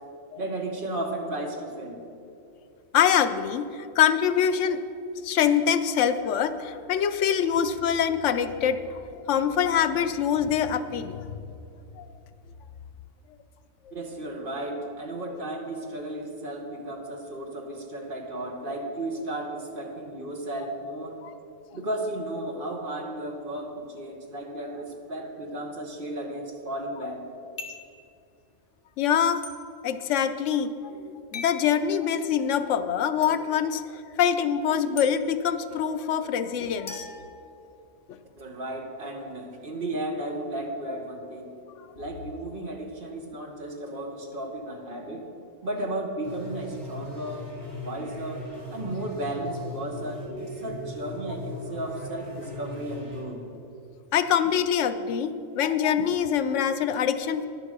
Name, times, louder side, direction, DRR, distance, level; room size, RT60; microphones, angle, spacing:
voice 1, 0.4-2.0 13.9-21.2 21.7-27.2 38.4-41.5 41.9-45.3 45.6-47.5 47.8-53.4, right 1 dB, 50° right, 2 dB, 1.4 m, -34 dB
voice 2, 2.9-4.8 5.2-11.3 12.0-12.1 13.9-14.0 21.2-21.3 29.0-29.5 29.8-37.2 38.1-38.2 54.1-57.5, left 8 dB, 80° left, 11 dB, 0.9 m, -25 dB
sound 1, 27.6-28.0 29.4-29.6 31.3-31.6 33.2-33.3 35.0-35.1 36.9-37.9, left 3 dB, 50° left, 1.3 m, -40 dB
sound 2, 46.2-53.2, left 1 dB, 25° right, 3.4 m, -38 dB
10.5 x 7.3 x 6.6 m, 2.5 s
omnidirectional pair, 1.2 m